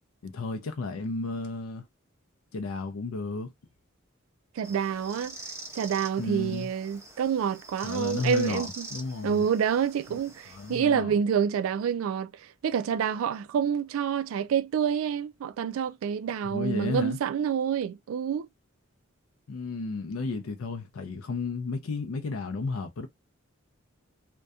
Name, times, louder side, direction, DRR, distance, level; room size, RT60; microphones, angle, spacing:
voice 1, 0.2-1.9 2.5-3.5 6.2-6.7 7.8-9.5 10.1-10.2 10.5-11.2 16.4-17.2 19.5-23.1, left 3 dB, 75° left, 0.5 m, -33 dB
sound 1, 4.6-10.8, right 2 dB, 15° right, 0.4 m, -45 dB
voice 2, 4.6-5.4 5.8-8.9 9.2-12.3 12.6-18.5, right 7 dB, 75° right, 0.3 m, -27 dB
2.6 x 2.2 x 2.2 m
head